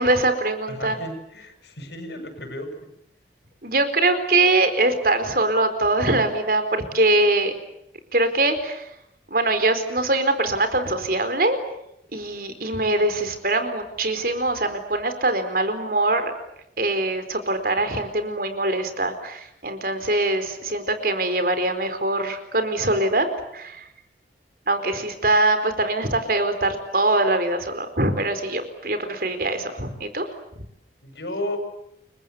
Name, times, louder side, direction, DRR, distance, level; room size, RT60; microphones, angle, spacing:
voice 1, 0.0-1.0 3.6-7.5 8.1-8.9 9.3-11.6 12.1-16.3 16.8-23.3 23.5-23.9 24.7-30.2, right 2 dB, 50° right, 9 dB, 4.3 m, -23 dB
voice 2, 0.7-2.9 31.0-31.6, left 1 dB, 70° left, 8 dB, 7.0 m, -33 dB
29.5 x 23.5 x 8.2 m, 0.80 s
head